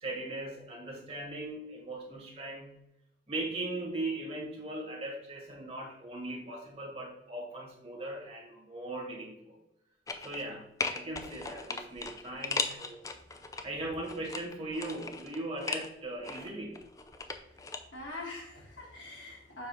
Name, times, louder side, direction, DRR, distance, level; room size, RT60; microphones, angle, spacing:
voice 1, 0.0-2.8 3.3-9.6 10.2-13.1 13.6-16.8, right 2 dB, 30° right, -2 dB, 1.6 m, -39 dB
sound 1, 10.1-10.5 10.8-13.6 14.1-15.9 16.2-17.8 18.1-18.2, left 4 dB, 20° left, 0.4 m, -37 dB
voice 2, 17.3-19.7, left 2 dB, 80° left, -2 dB, 2.1 m, -45 dB
7.0 x 2.7 x 5.5 m, 0.86 s
head